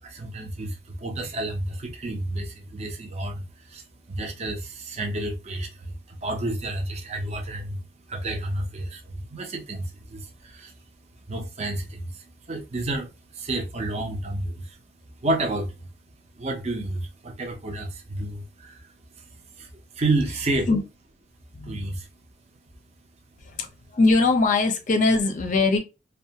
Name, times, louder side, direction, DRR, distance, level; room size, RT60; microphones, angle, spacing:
voice 1, 0.0-7.8 8.1-10.7 11.3-14.8 15.2-15.7 16.4-18.9 19.2-19.7 19.9-20.7 21.6-22.1, right 2 dB, 35° right, 0.5 m, -30 dB
voice 2, 21.5-21.8 23.4-23.7 23.9-25.8, left 3 dB, 40° left, 0.5 m, -21 dB
2.4 x 2.1 x 2.7 m
head